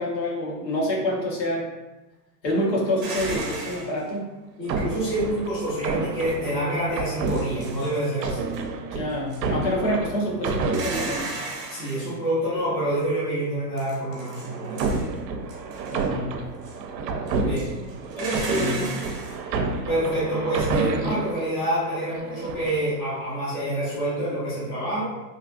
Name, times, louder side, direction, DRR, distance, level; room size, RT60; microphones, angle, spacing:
voice 1, 0.0-1.7 2.4-4.3 8.9-11.3 15.9-16.4 18.5-18.7, left 1 dB, 85° left, -4 dB, 1.3 m, -27 dB
sound 1, 3.0-4.0 6.2-6.3 7.1-8.1 8.5-8.7 9.1-9.6 10.7-12.2 13.8-15.2 15.5-16.0 16.6-16.8 17.3-19.4, right 3 dB, 30° right, 0.8 m, -36 dB
sound 2, 3.1-4.1 4.6-11.9 13.8-21.5 22.1-22.9, right 4 dB, 80° right, 0.6 m, -30 dB
voice 2, 4.6-8.4 11.7-14.9 17.4-17.7 18.2-18.9 19.9-25.1, right 1 dB, 15° left, -10 dB, 0.6 m, -27 dB
3.1 x 2.4 x 2.5 m, 1.1 s
supercardioid pair, 165°, 49 cm